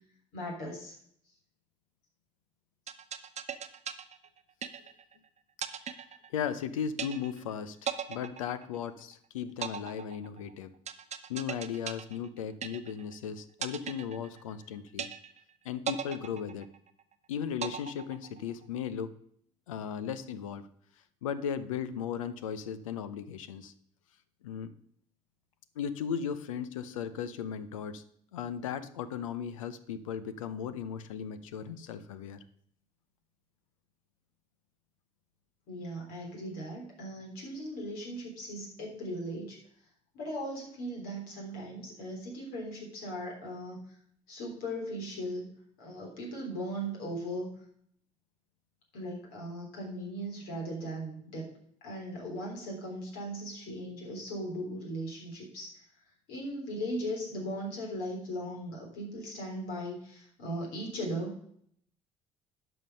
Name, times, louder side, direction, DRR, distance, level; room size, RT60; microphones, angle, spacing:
voice 1, 0.3-1.0 35.7-39.6 40.1-43.8 44.3-45.5 45.8-47.5 48.9-51.5 51.8-55.7 56.3-61.4, equal, 70° left, 0 dB, 3.5 m, -38 dB
sound 1, 2.9-5.2 5.6-6.6 7.0-7.5 7.9-9.1 9.6-13.2 13.6-14.6 15.0-15.5 15.9-17.1 17.6-18.6, right 8 dB, 45° right, 0.9 m, -38 dB
voice 2, 6.3-10.7 11.3-15.1 15.6-16.7 17.3-19.1 19.7-20.7 21.2-23.7 24.4-24.7 25.8-28.0 28.3-32.4, left 8 dB, 85° left, 13 dB, 0.6 m, -36 dB
11.0 x 5.7 x 5.3 m, 0.65 s
hypercardioid pair, 55°, 16 cm